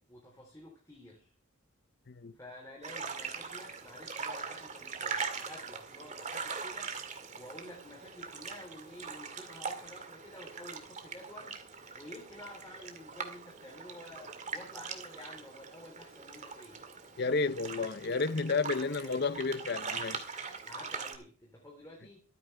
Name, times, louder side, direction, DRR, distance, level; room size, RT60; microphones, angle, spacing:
voice 1, 0.0-1.3 2.3-7.0 7.3-11.6 11.9-16.8 18.7-19.3 20.7-22.2, left 1 dB, 15° left, 3.4 m, -50 dB
sound 1, 2.8-21.2, right 5 dB, 35° right, 2.1 m, -42 dB
voice 2, 17.2-20.2, left 4 dB, 50° left, 0.6 m, -31 dB
23.5 x 9.5 x 3.4 m
head